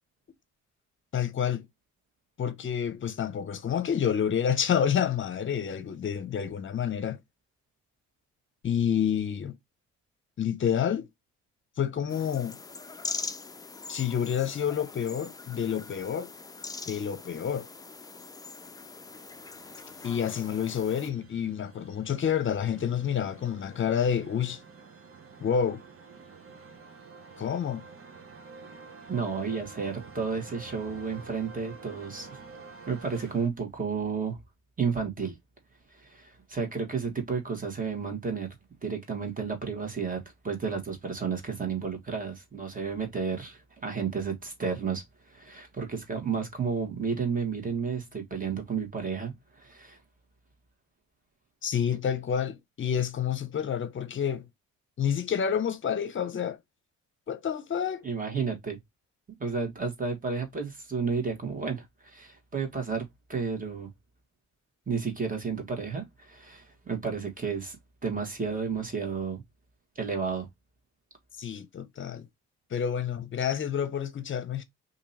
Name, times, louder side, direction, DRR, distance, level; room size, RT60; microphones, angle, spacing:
voice 1, 1.1-1.7 2.4-7.2 8.6-9.6 10.4-11.1 11.8-12.6 13.9-16.3 16.9-17.7 20.0-24.6 25.4-25.8 27.4-27.8 51.6-54.4 55.0-56.6 57.3-58.0 71.4-72.3 72.7-74.6, left 8 dB, 40° left, 0.7 m, -28 dB
sound 1, 12.1-21.1, left 4 dB, 15° left, 0.3 m, -42 dB
sound 2, 18.8-33.5, right 4 dB, 45° right, 1.1 m, -49 dB
voice 2, 29.1-32.4 32.9-34.4 34.8-35.3 35.9-38.5 38.8-50.0 58.0-58.8 59.4-63.9 64.9-67.8 68.0-69.4 69.9-70.5, right 5 dB, 25° right, 1.5 m, -32 dB
2.9 x 2.7 x 4.0 m
cardioid pair, 90°, 30 cm